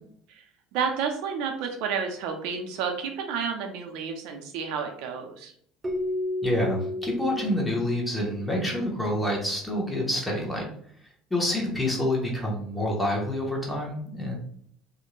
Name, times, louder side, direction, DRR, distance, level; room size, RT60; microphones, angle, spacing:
voice 1, 0.7-5.5, right 6 dB, 75° right, 4 dB, 0.5 m, -30 dB
Keyboard (musical), 5.8-8.7, left 1 dB, 20° right, 0.5 m, -32 dB
voice 2, 6.4-10.6 11.3-14.3, left 1 dB, 5° left, -2 dB, 0.8 m, -27 dB
2.5 x 2.1 x 3.0 m, 0.63 s
cardioid pair, 125°, 0 cm